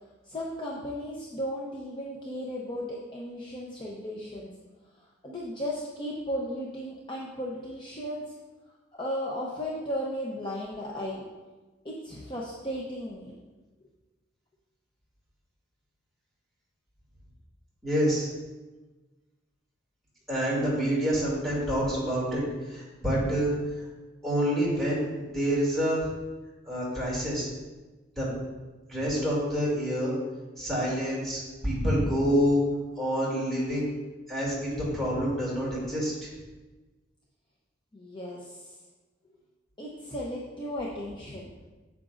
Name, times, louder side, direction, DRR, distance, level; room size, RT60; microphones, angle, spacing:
voice 1, 0.0-4.5 5.0-8.4 8.9-11.2 11.8-13.4 37.9-38.7 39.8-41.5, equal, 25° left, -4 dB, 0.8 m, -35 dB
voice 2, 17.8-18.3 20.3-23.5 24.2-26.1 26.7-27.5 28.2-28.3 28.9-30.2 30.6-32.6 33.0-33.9 34.3-36.3, equal, ahead, -7 dB, 2.6 m, -27 dB
8.9 x 7.3 x 2.6 m, 1.2 s
head